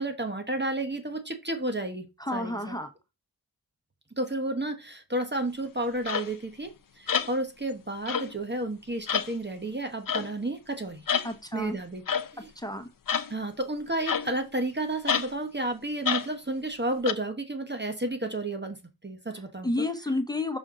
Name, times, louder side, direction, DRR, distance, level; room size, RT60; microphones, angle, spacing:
voice 1, 0.0-2.1 2.3-2.6 4.2-6.7 7.0-11.1 11.5-12.0 12.3-12.5 13.3-18.8 19.0-19.9, right 1 dB, 30° right, 6 dB, 1.2 m, -31 dB
voice 2, 2.2-2.9 11.2-11.8 12.5-12.9 19.6-20.6, left 2 dB, 10° left, 7 dB, 1.2 m, -30 dB
sound 1, 6.1-6.3 7.1-7.3 8.1-8.4 9.1-9.3 10.1-10.3 11.1-11.3 12.1-12.3 13.1-13.3 14.1-14.5 15.1-15.3 16.0-16.3 17.0-17.1, left 7 dB, 60° left, 0.7 m, -28 dB
6.2 x 5.5 x 3.8 m, 0.26 s
cardioid pair, 45°, 38 cm